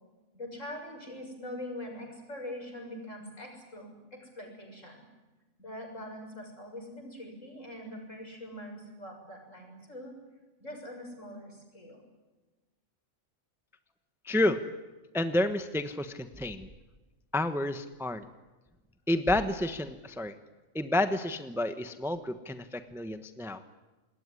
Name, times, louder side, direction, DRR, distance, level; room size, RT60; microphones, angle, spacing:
voice 1, 0.3-5.1 5.6-10.2 10.6-12.1, left 1 dB, 60° left, 2 dB, 7.2 m, -43 dB
voice 2, 14.2-14.6 15.1-16.7 17.3-18.3 19.1-20.3 20.7-23.6, left 1 dB, ahead, 9 dB, 1.0 m, -30 dB
27.0 x 20.5 x 9.9 m, 1.2 s
omnidirectional pair, 1.4 m